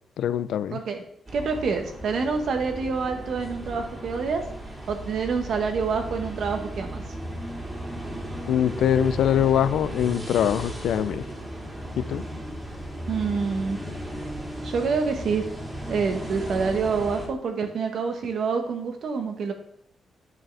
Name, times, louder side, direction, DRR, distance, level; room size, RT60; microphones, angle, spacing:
voice 1, 0.2-0.8 8.5-11.2 12.0-12.2, left 10 dB, 80° left, 14 dB, 0.4 m, -23 dB
sound 1, 1.3-17.3, right 1 dB, 15° right, 2.3 m, -35 dB
voice 2, 1.3-4.4 4.9-7.0 13.1-13.8 14.6-15.4 15.9-19.5, right 5 dB, 65° right, 5 dB, 1.3 m, -27 dB
9.1 x 6.2 x 3.4 m, 0.76 s
cardioid pair, 90°, 0 cm